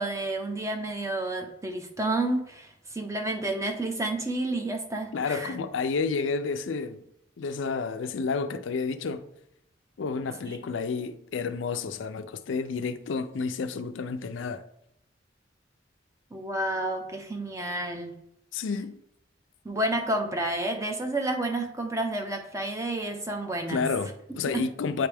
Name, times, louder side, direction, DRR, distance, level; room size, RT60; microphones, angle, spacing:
voice 1, 0.0-5.5 10.5-10.6 16.3-18.2 19.6-23.8 24.5-24.6, right 2 dB, 15° right, 0.6 m, -30 dB
voice 2, 5.1-7.0 7.4-9.2 10.0-14.6 18.5-19.0 23.7-25.1, left 4 dB, 80° left, 0.4 m, -30 dB
9.1 x 3.3 x 3.4 m
head